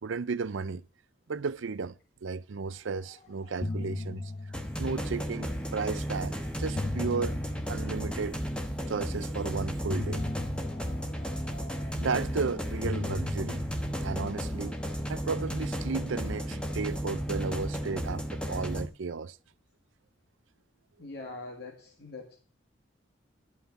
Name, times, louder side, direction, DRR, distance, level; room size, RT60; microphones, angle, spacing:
voice 1, 0.0-0.8 1.3-2.0 2.2-4.3 4.8-7.4 7.7-8.4 8.9-10.3 12.0-13.6 14.0-14.8 15.1-19.4, right 4 dB, 75° right, 0.5 m, -34 dB
sound 1, 3.0-3.2 3.4-5.8 6.5-8.9 9.9-12.3 12.8-15.4, left 2 dB, 35° left, 0.5 m, -39 dB
sound 2, 4.5-18.9, equal, 5° left, 1.1 m, -34 dB
voice 2, 21.0-22.4, left 3 dB, 55° left, 1.7 m, -43 dB
11.5 x 5.7 x 8.0 m
head